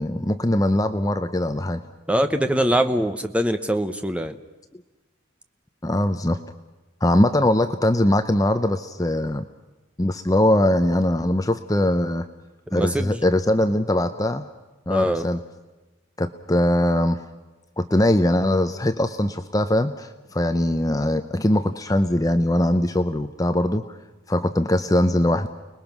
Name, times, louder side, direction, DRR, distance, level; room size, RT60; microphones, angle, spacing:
voice 1, 0.0-1.8 5.8-6.4 7.0-9.4 10.0-12.3 12.7-14.4 14.9-15.4 16.2-17.2 17.8-23.8 24.3-25.5, left 1 dB, 15° left, 9 dB, 0.7 m, -21 dB
voice 2, 2.1-4.4 12.7-13.2 14.9-15.2, equal, 5° right, 8 dB, 0.9 m, -23 dB
30.0 x 20.5 x 6.0 m, 1.2 s
head